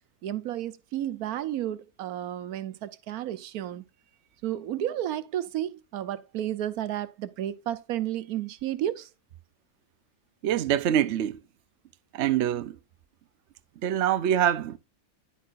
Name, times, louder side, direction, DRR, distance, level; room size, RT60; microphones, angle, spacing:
voice 1, 0.2-3.8 4.4-9.1, right 12 dB, 85° right, 1.2 m, -32 dB
voice 2, 10.4-11.4 12.1-12.8 13.8-14.8, right 10 dB, 60° right, 0.9 m, -25 dB
10.0 x 8.4 x 2.5 m
omnidirectional pair, 1.5 m